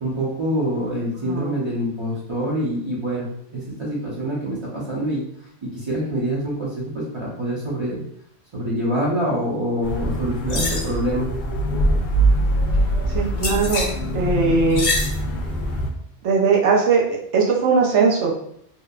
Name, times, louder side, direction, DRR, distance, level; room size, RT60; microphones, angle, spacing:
voice 1, 0.0-3.3 3.5-5.2 5.6-8.0 8.5-11.3, equal, 35° right, -7 dB, 0.5 m, -25 dB
voice 2, 1.2-1.5 13.1-13.9 14.1-14.9 16.2-18.3, right 4 dB, 85° right, -2 dB, 0.9 m, -19 dB
sound 1, 9.8-15.9, right 1 dB, 55° left, 0.6 m, -22 dB
2.7 x 2.0 x 2.3 m, 0.68 s
omnidirectional pair, 1.2 m